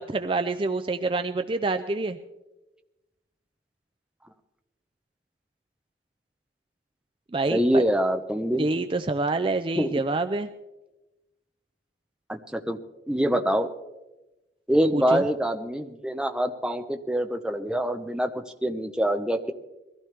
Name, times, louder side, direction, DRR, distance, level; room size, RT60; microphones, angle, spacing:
voice 1, 0.0-2.2 7.3-7.8 8.6-10.5 14.9-15.2, right 3 dB, 30° right, 8 dB, 0.4 m, -27 dB
voice 2, 7.5-8.7 9.8-9.9 12.3-12.8 13.1-13.7 14.7-19.5, equal, 5° right, 5 dB, 0.8 m, -25 dB
22.5 x 15.5 x 3.4 m, 1.1 s
head